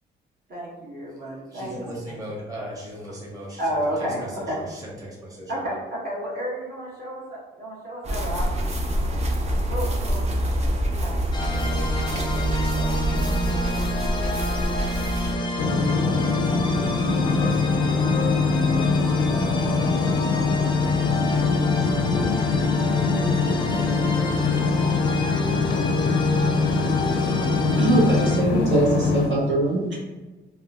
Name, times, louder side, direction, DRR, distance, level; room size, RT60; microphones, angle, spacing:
voice 1, 0.5-1.9 3.6-4.6 5.5-8.5 9.7-10.6 11.0-11.3, equal, 55° right, -6 dB, 1.5 m, -31 dB
voice 2, 1.5-5.6 11.4-13.1 13.4-14.0 15.2-20.3 20.7-22.4 23.6-23.9, equal, 15° right, -4 dB, 0.9 m, -40 dB
sound 1, 8.0-15.3, right 1 dB, 35° right, 0.7 m, -25 dB
sound 2, 11.3-28.4, left 1 dB, 25° left, 0.4 m, -29 dB
sound 3, 15.6-29.3, left 4 dB, 85° left, 0.5 m, -23 dB
voice 3, 27.4-29.9, right 2 dB, 70° right, -5 dB, 1.0 m, -22 dB
3.6 x 2.3 x 2.4 m, 1.2 s
cardioid pair, 90°, 20 cm